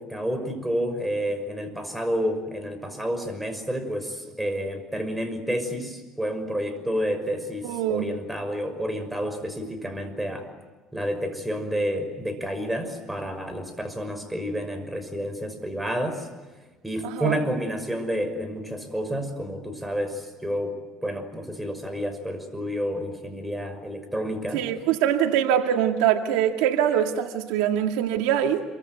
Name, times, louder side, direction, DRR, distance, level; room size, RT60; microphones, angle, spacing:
voice 1, 0.0-10.5 10.9-16.3 16.8-20.8 21.0-24.6, equal, 5° right, 7 dB, 6.0 m, -30 dB
voice 2, 7.6-8.1 17.0-17.4 24.5-28.6, right 10 dB, 85° right, 5 dB, 2.0 m, -23 dB
27.5 x 24.0 x 8.1 m, 1.2 s
supercardioid pair, 100°, 0 cm